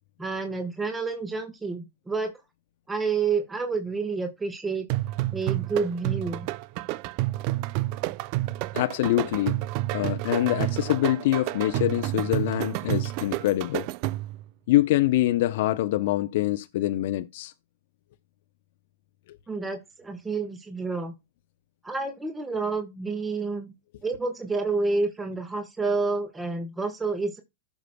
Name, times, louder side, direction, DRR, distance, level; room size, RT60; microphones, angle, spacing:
voice 1, 0.2-2.3 2.9-4.8 5.3-6.5 19.5-21.1 21.8-23.7 24.0-27.4, right 4 dB, 10° right, 1.5 m, -29 dB
sound 1, 4.9-14.4, right 17 dB, 50° right, 0.5 m, -29 dB
voice 2, 8.7-9.6 9.9-13.9 14.7-17.5 19.3-19.4, left 15 dB, 60° left, 0.7 m, -25 dB
16.0 x 6.3 x 2.3 m
hypercardioid pair, 110°, 0 cm